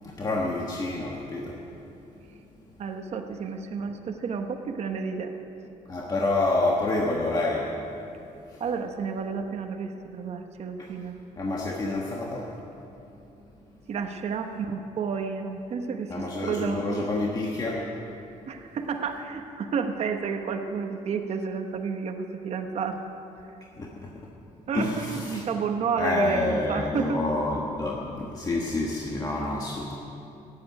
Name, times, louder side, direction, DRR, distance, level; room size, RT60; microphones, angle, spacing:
voice 1, 0.0-1.6 5.9-7.8 8.5-8.6 10.8-10.9 11.4-12.5 16.1-17.9 23.8-24.3 24.7-25.4 26.0-29.9, left 2 dB, 30° left, -2 dB, 1.4 m, -28 dB
voice 2, 2.8-5.3 8.6-11.2 11.8-12.0 13.9-17.0 18.5-23.0 24.7-27.2, right 5 dB, 50° right, 5 dB, 1.1 m, -31 dB
15.0 x 8.7 x 9.5 m, 2.8 s
cardioid pair, 135°, 14 cm